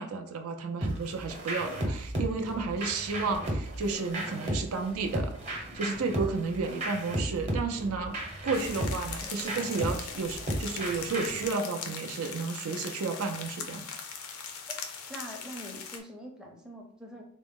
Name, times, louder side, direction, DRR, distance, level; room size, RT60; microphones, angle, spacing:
voice 1, 0.0-5.4 5.7-8.2 8.4-13.9, right 4 dB, 65° right, 5 dB, 0.4 m, -32 dB
sound 1, 0.8-11.5, right 1 dB, 30° right, 0.8 m, -35 dB
sound 2, 8.5-16.0, left 6 dB, 70° left, 0.5 m, -40 dB
voice 2, 15.1-17.2, equal, 5° right, -1 dB, 0.6 m, -44 dB
3.9 x 2.0 x 3.6 m, 0.64 s
head